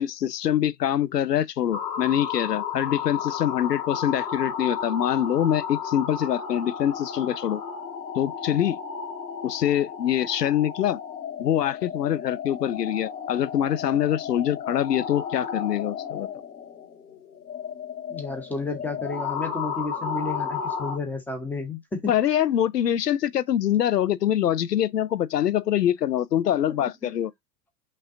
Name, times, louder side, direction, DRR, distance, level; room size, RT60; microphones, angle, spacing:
voice 1, 0.0-7.6 8.2-8.8 9.4-11.0 11.4-16.3 22.1-27.3, left 11 dB, 80° left, 0.6 m, -24 dB
sound 1, 1.7-21.0, left 7 dB, 60° left, 2.0 m, -33 dB
voice 2, 18.1-22.1 26.7-27.1, left 3 dB, 5° left, 0.6 m, -32 dB
5.4 x 2.2 x 3.6 m
figure-of-eight pair, 105°, 48 cm